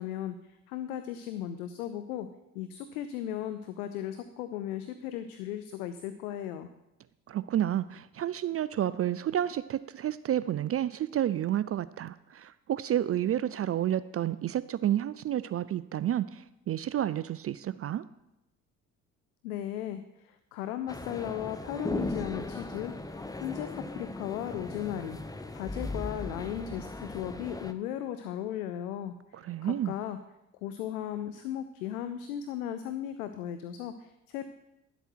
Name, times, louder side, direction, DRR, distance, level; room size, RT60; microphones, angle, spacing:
voice 1, 0.0-6.7 19.4-25.2 25.5-30.2 30.6-34.4, left 11 dB, 85° left, 10 dB, 0.6 m, -36 dB
voice 2, 7.3-18.0 29.3-29.9, right 11 dB, 35° right, 16 dB, 0.4 m, -30 dB
sound 1, 20.9-27.7, left 2 dB, 10° left, 0.7 m, -38 dB
11.5 x 8.0 x 4.6 m, 0.91 s
hypercardioid pair, 55°, 43 cm